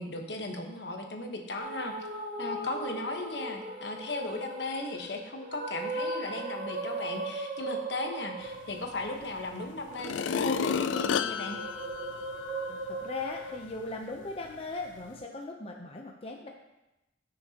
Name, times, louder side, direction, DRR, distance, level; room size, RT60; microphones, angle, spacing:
voice 1, 0.0-1.9 2.4-11.6, left 2 dB, 70° left, 3 dB, 1.2 m, -36 dB
sound 1, 1.6-13.7, right 2 dB, 55° right, 1.6 m, -38 dB
sound 2, 9.2-9.3 9.9-12.8 13.2-13.3, left 7 dB, 90° left, 0.3 m, -31 dB
voice 2, 12.7-16.5, left 3 dB, 30° left, 1 dB, 0.7 m, -39 dB
15.0 x 6.5 x 2.9 m, 0.96 s
head